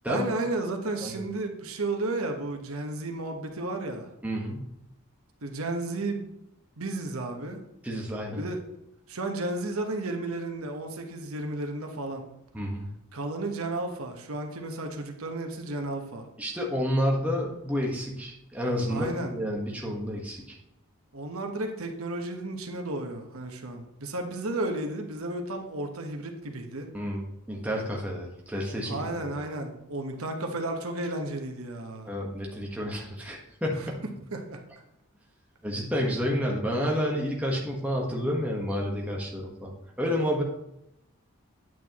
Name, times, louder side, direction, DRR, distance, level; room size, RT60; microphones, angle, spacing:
voice 1, 0.1-4.1 5.4-6.3 6.8-7.6 8.4-8.6 9.1-12.3 13.1-16.3 18.9-19.3 21.1-26.9 28.9-32.1 33.8-33.9 34.3-34.6, right 2 dB, 80° right, 3 dB, 1.2 m, -33 dB
voice 2, 4.2-4.6 7.8-8.4 12.5-12.8 16.4-20.5 26.9-29.4 32.1-34.0 35.6-39.7 40.0-40.4, equal, 5° right, -2 dB, 1.3 m, -30 dB
9.0 x 8.5 x 3.0 m, 0.84 s
head